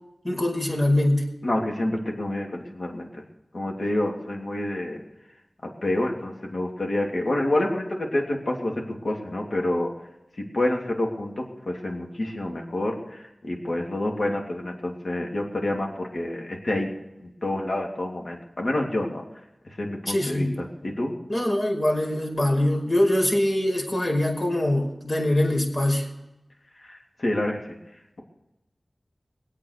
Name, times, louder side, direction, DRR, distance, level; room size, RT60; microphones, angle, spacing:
voice 1, 0.2-1.2 20.1-20.5 21.3-26.1, left 1 dB, 50° left, 0 dB, 5.1 m, -23 dB
voice 2, 1.4-3.1 3.5-5.0 5.8-8.7 9.0-9.9 10.4-16.9 17.4-19.2 19.8-20.5 20.8-21.1 26.8-27.6, left 1 dB, 70° left, 0 dB, 3.0 m, -28 dB
21.5 x 8.4 x 6.7 m, 0.93 s
wide cardioid pair, 55°, 0 cm